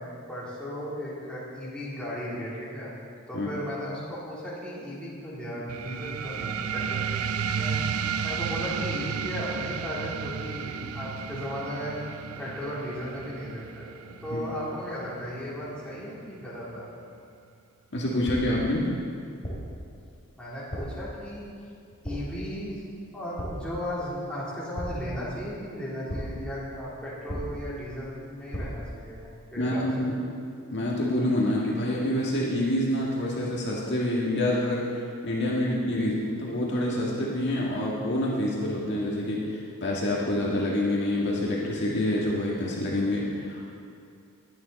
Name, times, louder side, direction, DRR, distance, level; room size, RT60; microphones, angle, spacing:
voice 1, 0.0-3.0 3.3-12.0 12.4-16.9 20.4-21.4 22.0-22.8 23.1-30.1 36.0-36.1, equal, 5° left, -9 dB, 3.6 m, -36 dB
sound 1, 5.7-16.7, right 7 dB, 85° right, 0.5 m, -33 dB
voice 2, 17.9-18.9 29.6-30.2 30.7-34.9 35.2-36.1 36.4-43.6, left 1 dB, 50° left, -4 dB, 1.8 m, -27 dB
sound 2, 18.3-18.7 19.4-19.8 20.7-21.1 22.0-22.5 23.4-23.8 24.7-25.3 26.1-26.5 27.3-27.8 28.5-28.9, equal, 30° left, 3.3 m, -35 dB
21.0 x 9.4 x 4.2 m, 2.4 s
head